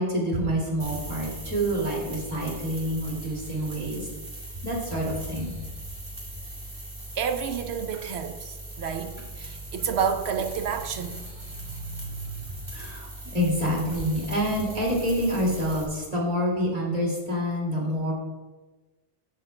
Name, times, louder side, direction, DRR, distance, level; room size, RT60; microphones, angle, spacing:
voice 1, 0.0-4.1 4.6-5.6 12.7-18.1, equal, 35° right, -3 dB, 2.6 m, -27 dB
sound 1, 0.8-15.8, right 2 dB, 55° right, 3.1 m, -40 dB
voice 2, 7.2-12.6, right 7 dB, 75° right, 6 dB, 1.0 m, -31 dB
15.0 x 7.7 x 2.2 m, 1.2 s
omnidirectional pair, 1.1 m